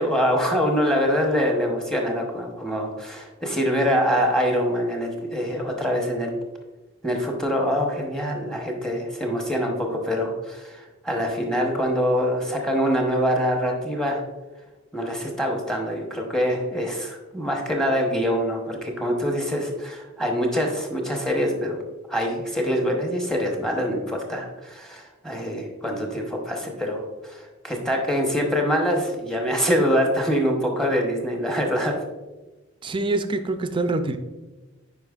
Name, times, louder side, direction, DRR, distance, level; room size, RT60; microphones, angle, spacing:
voice 1, 0.0-6.3 7.0-14.2 14.9-21.8 22.1-31.9, equal, 5° left, 1 dB, 0.9 m, -24 dB
voice 2, 32.8-34.2, right 2 dB, 25° right, 9 dB, 0.4 m, -25 dB
8.7 x 5.0 x 2.4 m, 1.1 s
head